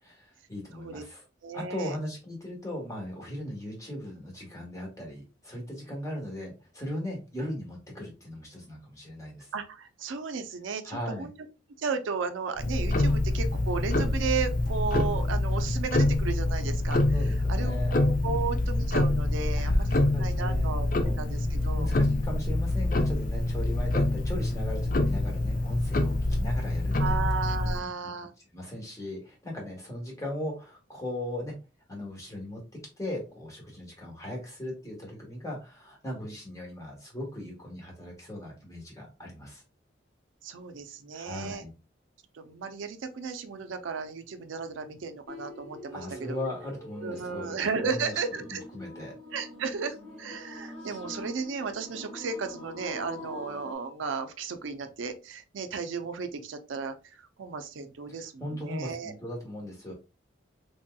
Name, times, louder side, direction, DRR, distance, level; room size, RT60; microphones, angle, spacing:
voice 1, 0.0-1.2 1.5-9.5 10.8-11.3 17.1-17.9 18.2-18.7 19.5-20.7 21.0-21.1 21.7-27.3 27.8-27.9 28.5-31.5 31.9-32.6 33.0-39.6 41.1-41.7 45.9-47.6 47.8-48.1 48.5-49.1 58.1-59.9, left 1 dB, 15° left, -1 dB, 1.1 m, -38 dB
voice 2, 1.4-2.0 9.5-11.3 11.8-17.0 17.5-20.9 21.2-21.9 27.0-28.3 40.4-41.6 42.3-46.4 47.0-48.6 49.3-59.1, right 5 dB, 80° right, 8 dB, 0.4 m, -34 dB
Tick-tock, 12.6-27.8, left 2 dB, 45° left, 0.4 m, -26 dB
sound 1, 45.3-53.8, left 1 dB, 80° left, 1.3 m, -44 dB
3.3 x 2.7 x 2.2 m, 0.30 s
head